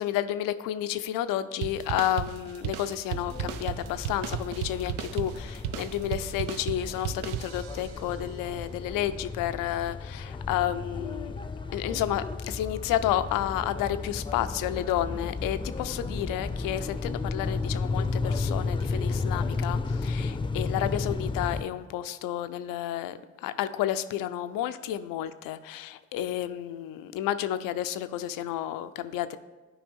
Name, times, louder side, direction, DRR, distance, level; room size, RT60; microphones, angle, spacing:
voice 1, 0.0-11.4 11.7-29.4, left 12 dB, 85° left, 12 dB, 0.5 m, -31 dB
sound 1, 1.6-8.0, right 10 dB, 75° right, 0.5 m, -35 dB
sound 2, 3.1-21.6, left 3 dB, 15° left, 0.5 m, -33 dB
12.0 x 4.8 x 3.5 m, 1.2 s
supercardioid pair, 45°, 33 cm